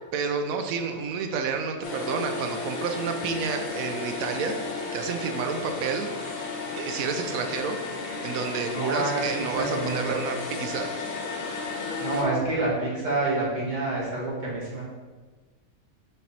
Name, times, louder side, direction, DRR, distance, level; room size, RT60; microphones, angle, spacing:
voice 1, 0.1-6.1 6.8-7.8 8.2-10.9, right 5 dB, 70° right, 5 dB, 1.0 m, -30 dB
sound 1, 1.8-12.2, left 3 dB, 60° left, 1.2 m, -34 dB
voice 2, 8.7-10.2 12.0-14.8, right 2 dB, 30° right, -7 dB, 1.8 m, -28 dB
6.6 x 3.4 x 4.2 m, 1.3 s
omnidirectional pair, 1.6 m